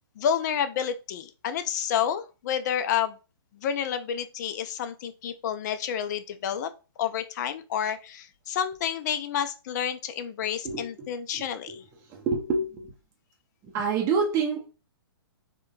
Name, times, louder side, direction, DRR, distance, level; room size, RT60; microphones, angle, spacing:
voice 1, 0.2-3.1 3.6-6.7 7.0-11.8, left 9 dB, 45° left, 0.4 m, -29 dB
voice 2, 10.6-11.1 11.3-11.8 12.1-12.9 13.6-14.7, right 4 dB, 20° right, 0.6 m, -28 dB
3.6 x 2.2 x 2.6 m
hypercardioid pair, 130°, 13 cm